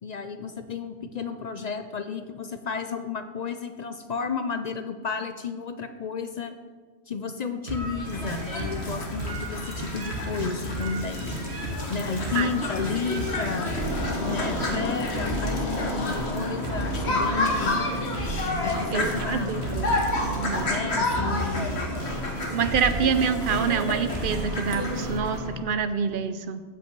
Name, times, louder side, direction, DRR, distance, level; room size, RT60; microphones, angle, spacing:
voice 1, 0.0-6.6 7.1-11.4 11.9-13.8 14.2-17.8 18.6-19.7 20.7-21.8, left 5 dB, 50° left, 8 dB, 0.5 m, -32 dB
sound 1, 7.7-25.6, equal, 75° right, 2.1 m, -33 dB
sound 2, 8.1-25.0, left 2 dB, 75° left, 1.7 m, -30 dB
voice 2, 18.9-20.0 20.3-20.7 22.5-26.6, right 6 dB, 60° right, 11 dB, 0.8 m, -26 dB
14.5 x 5.6 x 4.6 m, 1.4 s
omnidirectional pair, 1.1 m